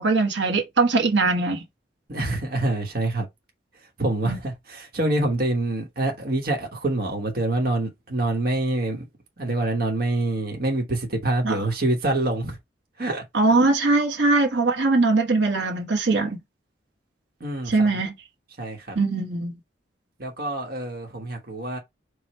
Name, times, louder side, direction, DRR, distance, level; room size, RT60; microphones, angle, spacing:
voice 1, 0.0-1.6 4.2-4.4 11.4-11.7 13.3-16.4 17.7-18.1 18.9-19.5, right 3 dB, 85° right, 1.2 m, -21 dB
voice 2, 2.1-3.3 4.0-9.0 9.4-12.6 13.0-13.2 17.4-17.9 18.6-19.0 20.2-21.8, right 2 dB, 55° right, 1.3 m, -26 dB
4.9 x 2.4 x 4.3 m
head